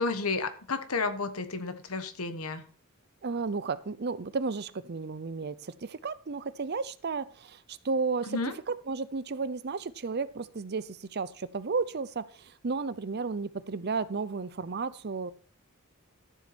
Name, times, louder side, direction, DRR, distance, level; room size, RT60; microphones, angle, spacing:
voice 1, 0.0-2.6 8.3-8.5, left 4 dB, 85° left, 10 dB, 1.3 m, -31 dB
voice 2, 3.2-8.4 8.7-15.3, right 4 dB, 50° right, 16 dB, 0.6 m, -33 dB
13.0 x 7.4 x 4.3 m, 0.42 s
head